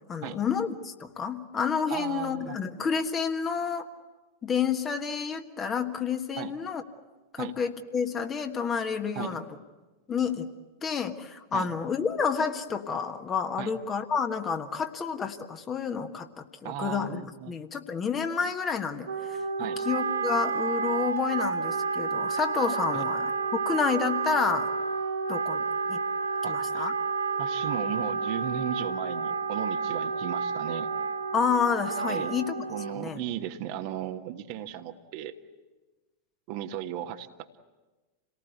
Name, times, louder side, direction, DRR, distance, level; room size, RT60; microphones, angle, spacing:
voice 1, 0.1-3.8 4.4-6.8 7.3-9.4 10.1-10.5 10.8-19.1 19.9-24.7 25.3-26.0 26.5-26.9 31.3-32.6 32.9-33.2, left 6 dB, 25° left, 6 dB, 1.5 m, -29 dB
voice 2, 1.9-2.6 6.4-6.5 7.4-7.5 9.1-9.4 11.5-11.7 13.6-13.7 16.6-17.6 19.6-19.8 22.9-23.0 26.4-26.9 27.4-30.9 32.1-32.4 32.7-35.4 36.5-37.6, right 11 dB, 45° right, 7 dB, 1.3 m, -36 dB
Wind instrument woodwind instrument, 19.0-33.1, right 5 dB, 75° right, 2.0 m, -30 dB
28.0 x 18.5 x 8.1 m, 1.2 s
figure-of-eight pair, 90°, 0 cm